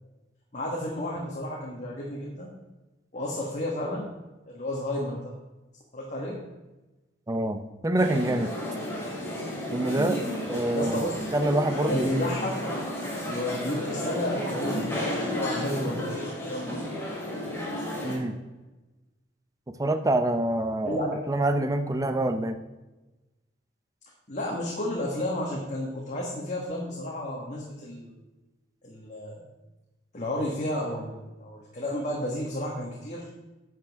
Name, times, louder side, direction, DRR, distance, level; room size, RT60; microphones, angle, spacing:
voice 1, 0.5-2.5 3.1-4.1 4.5-5.3 5.9-6.4 10.7-11.1 11.9-12.5 13.2-16.8 20.8-21.2 24.3-28.2 28.8-29.4 30.1-33.3, left 1 dB, 40° left, -3 dB, 1.5 m, -32 dB
voice 2, 7.3-8.5 9.7-12.1 18.0-18.4 19.8-22.6, right 1 dB, 20° right, 8 dB, 0.6 m, -26 dB
sound 1, 8.0-18.2, equal, 15° left, 2.9 m, -32 dB
11.5 x 7.7 x 3.6 m, 1.1 s
head